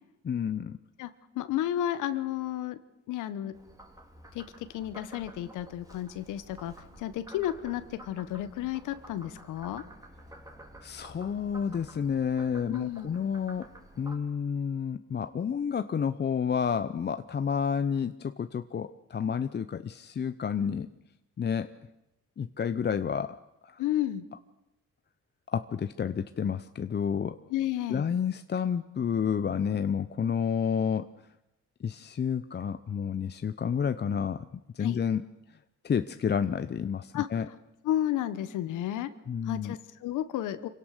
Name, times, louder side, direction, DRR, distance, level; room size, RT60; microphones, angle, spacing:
voice 1, 0.2-0.8 10.8-13.7 14.0-20.9 21.4-21.7 22.4-23.4 23.6-23.8 25.5-27.4 27.9-31.1 31.8-34.5 34.7-35.3 35.8-37.5 39.3-39.8, left 7 dB, 35° left, 11 dB, 0.7 m, -30 dB
voice 2, 1.3-2.8 3.1-3.5 4.3-4.4 4.7-9.8 12.7-13.1 23.8-24.2 27.5-28.0 34.8-35.0 37.1-37.3 37.8-39.1 39.5-40.7, left 12 dB, 90° left, 13 dB, 1.2 m, -32 dB
Frog, 3.5-14.2, right 1 dB, 10° right, 3.0 m, -51 dB
26.0 x 17.0 x 6.6 m, 0.93 s
cardioid pair, 90°, 30 cm